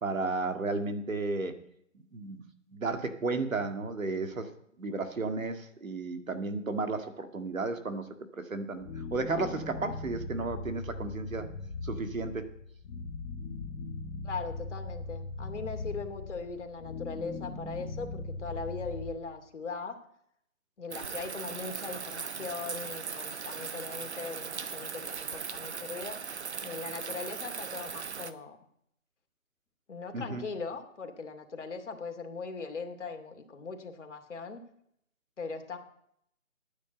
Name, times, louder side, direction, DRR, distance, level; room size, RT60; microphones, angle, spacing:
voice 1, 0.0-1.6 2.1-2.5 2.7-4.5 4.8-11.5 11.8-12.5 30.1-30.5, right 3 dB, 75° right, 7 dB, 2.1 m, -33 dB
sound 1, 8.8-19.1, left 3 dB, 10° left, 1.0 m, -39 dB
voice 2, 14.2-20.0 20.8-26.2 26.6-28.6 29.9-34.6 35.4-35.8, left 4 dB, 60° left, 5 dB, 2.6 m, -39 dB
sound 2, 20.9-28.3, right 6 dB, 55° right, 1.1 m, -39 dB
9.7 x 9.4 x 7.9 m, 0.72 s
figure-of-eight pair, 160°, 41 cm